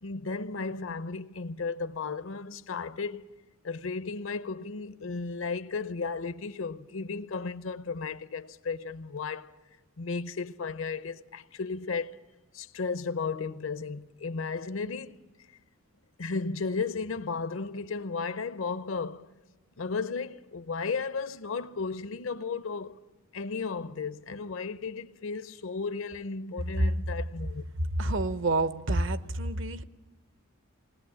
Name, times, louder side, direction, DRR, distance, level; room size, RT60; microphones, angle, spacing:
voice 1, 0.0-3.2 3.6-9.5 10.0-12.2 12.5-15.2 16.2-19.3 19.8-23.0 23.3-27.6, left 4 dB, 65° left, 0.7 m, -34 dB
voice 2, 28.0-29.8, right 2 dB, 55° right, 0.7 m, -27 dB
20.5 x 19.0 x 8.7 m
head